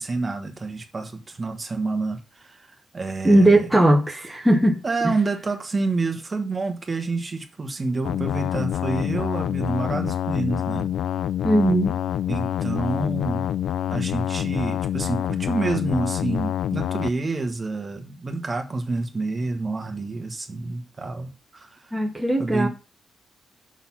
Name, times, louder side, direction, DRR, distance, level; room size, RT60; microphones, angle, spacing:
voice 1, 0.0-3.6 4.8-10.9 12.3-13.5 13.9-22.0 22.4-22.7, right 3 dB, 20° right, 1.2 m, -28 dB
voice 2, 3.2-4.8 11.4-12.0 21.9-22.7, right 1 dB, 5° right, 1.2 m, -18 dB
sound 1, 8.1-17.1, left 10 dB, 80° left, 0.3 m, -26 dB
6.5 x 6.2 x 5.8 m
wide cardioid pair, 160°, 0 cm